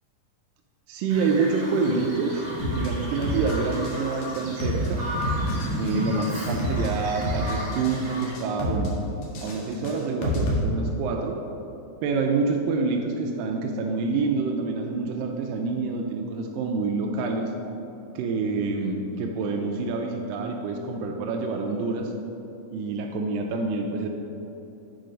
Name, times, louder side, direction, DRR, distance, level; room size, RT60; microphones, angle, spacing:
voice 1, 0.9-5.0 5.7-8.9 9.4-11.4 12.0-17.5 18.2-22.1 22.7-24.1, right 4 dB, 80° right, 1 dB, 2.0 m, -27 dB
Bird vocalization bird call bird song, 1.1-8.3, equal, 50° right, 1.9 m, -34 dB
sound 1, 2.6-2.9 3.2-4.9 5.2-5.9 6.2-6.9 7.2-8.0 8.2-8.9 9.2-10.6, left 1 dB, 90° left, 3.1 m, -28 dB
7.7 x 4.7 x 5.1 m, 2.9 s
omnidirectional pair, 4.3 m